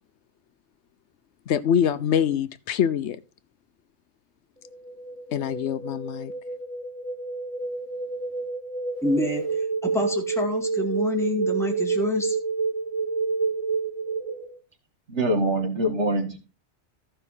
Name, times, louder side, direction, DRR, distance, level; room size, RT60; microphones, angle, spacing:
voice 1, 1.5-3.2 5.3-6.3, left 9 dB, 75° left, 1.0 m, -24 dB
sound 1, 4.6-14.6, right 4 dB, 30° right, 1.2 m, -29 dB
voice 2, 9.0-12.4, left 2 dB, ahead, 2.0 m, -27 dB
voice 3, 15.1-16.4, right 1 dB, 75° right, 2.2 m, -24 dB
14.5 x 5.6 x 4.2 m
omnidirectional pair, 1.2 m